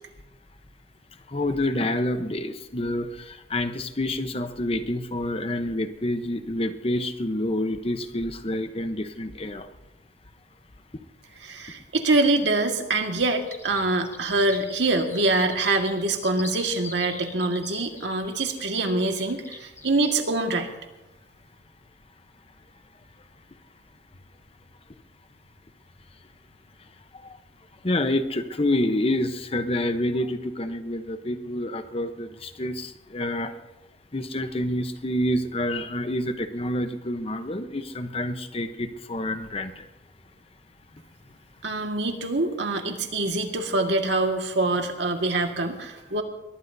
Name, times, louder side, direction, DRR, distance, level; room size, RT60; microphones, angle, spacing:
voice 1, 1.3-9.7 27.8-33.5 34.1-39.9, left 1 dB, 30° left, 9 dB, 0.9 m, -28 dB
voice 2, 11.4-20.7 41.6-46.2, right 2 dB, 75° right, 4 dB, 1.8 m, -25 dB
sound 1, 13.4-20.1, left 3 dB, 15° left, 1.3 m, -42 dB
22.5 x 19.5 x 2.7 m, 1.0 s
head